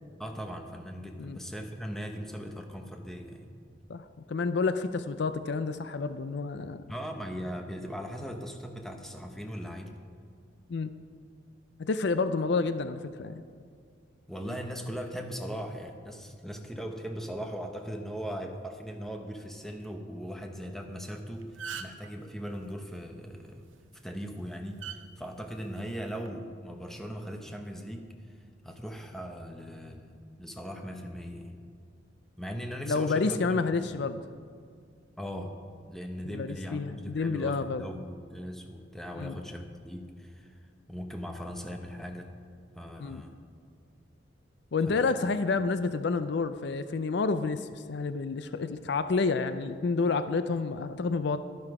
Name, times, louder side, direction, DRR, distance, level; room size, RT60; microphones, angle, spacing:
voice 1, 0.2-3.5 6.9-9.9 14.3-23.6 24.0-28.1 28.6-31.6 32.4-33.9 35.2-35.6 35.9-40.6 40.9-42.3 42.7-43.3 44.9-45.1, equal, ahead, 3 dB, 0.9 m, -39 dB
voice 2, 4.3-6.8 10.7-10.9 11.8-13.4 32.9-34.2 36.2-37.9 39.1-39.4 43.0-43.2 44.7-51.4, left 4 dB, 60° left, 11 dB, 0.4 m, -29 dB
sound 1, 21.0-21.2 21.4-22.1 23.7-24.0 24.8-25.0 26.0-26.3, right 7 dB, 80° right, 0.8 m, -39 dB
12.0 x 11.5 x 4.8 m, 2.2 s
head